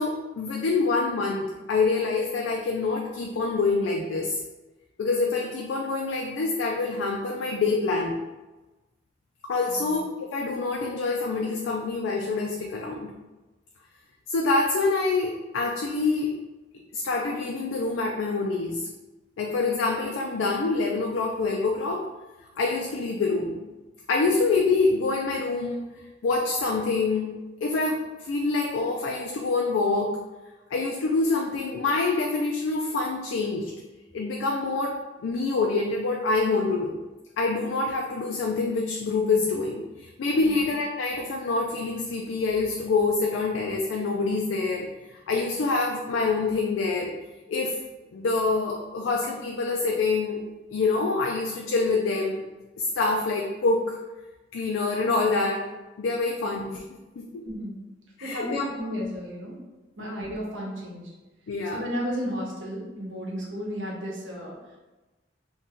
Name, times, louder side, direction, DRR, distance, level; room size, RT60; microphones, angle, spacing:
voice 1, 0.0-4.4 5.0-8.2 9.5-13.1 14.3-16.4 16.9-18.8 19.4-22.0 22.6-23.6 24.1-25.8 26.2-27.3 27.6-30.2 30.7-33.7 34.1-37.0 37.4-47.1 47.5-47.8 48.1-50.4 50.7-52.4 52.8-54.0 54.5-55.6 56.0-56.8 57.2-57.4 58.2-58.7 60.0-60.1 61.5-61.8, left 3 dB, 85° left, 0 dB, 0.3 m, -26 dB
voice 2, 57.4-57.8 58.2-59.6 60.0-61.1 61.7-64.8, equal, 85° right, -3 dB, 0.9 m, -33 dB
2.7 x 2.2 x 3.5 m, 1.1 s
head